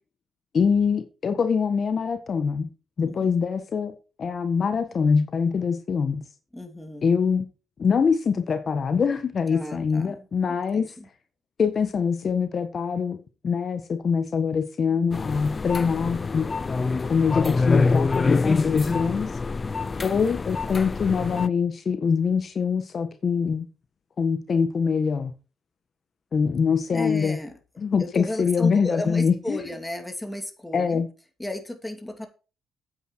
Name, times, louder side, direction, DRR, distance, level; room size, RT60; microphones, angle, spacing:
voice 1, 0.5-6.2 7.0-7.5 7.8-10.9 11.6-16.6 17.1-19.3 20.0-23.7 24.2-25.3 26.3-27.4 27.8-29.6 30.7-31.1, left 6 dB, 45° left, 1.5 m, -24 dB
voice 2, 3.0-3.4 6.5-7.1 9.5-11.1 26.9-27.6 28.0-31.0 31.4-32.3, left 1 dB, 10° left, 2.7 m, -34 dB
sound 1, 15.1-21.5, left 4 dB, 30° left, 0.4 m, -25 dB
9.4 x 8.6 x 4.6 m
cardioid pair, 90°, 0 cm